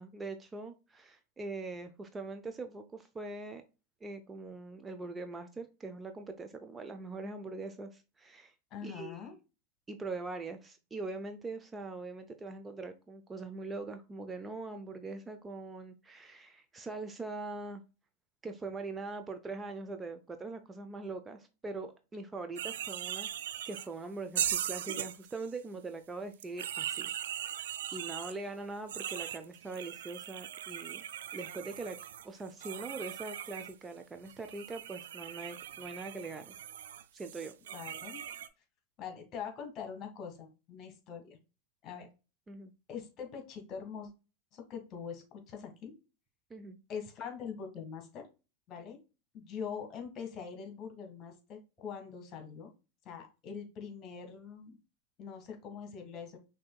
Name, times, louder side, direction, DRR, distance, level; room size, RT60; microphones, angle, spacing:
voice 1, 0.0-3.6 4.0-8.5 8.8-9.2 9.9-17.8 18.4-23.3 23.7-27.7 27.9-31.0 31.3-32.0 32.2-36.6 37.1-37.5 42.5-42.7 46.5-46.8, right 3 dB, 20° right, 7 dB, 0.5 m, -42 dB
voice 2, 8.7-9.4 37.7-38.2 39.0-41.4 41.8-42.1 42.9-44.1 44.5-45.9 46.9-48.3 48.7-49.0 49.3-52.7 53.0-54.8 55.2-56.4, left 6 dB, 40° left, 4 dB, 1.6 m, -43 dB
sound 1, 22.6-23.9 24.3-25.5 26.3-28.3 28.9-33.7 34.2-38.5, right 10 dB, 75° right, 0.3 m, -39 dB
6.0 x 2.8 x 2.3 m, 0.30 s
hypercardioid pair, 95°, 0 cm